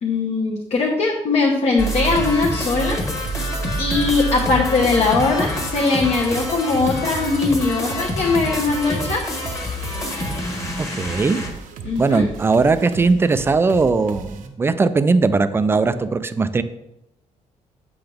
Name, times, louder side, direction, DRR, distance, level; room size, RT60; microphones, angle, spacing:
voice 1, 0.0-3.0 3.8-9.2 11.8-12.3, left 3 dB, 55° left, -2 dB, 1.1 m, -20 dB
sound 1, 1.8-11.5, equal, 25° left, 1.4 m, -26 dB
sound 2, 2.1-14.5, right 6 dB, 80° right, 0.8 m, -37 dB
voice 2, 10.8-11.4 12.0-16.6, right 4 dB, 15° right, 13 dB, 0.3 m, -19 dB
7.8 x 5.8 x 3.5 m, 0.88 s
cardioid pair, 145°, 14 cm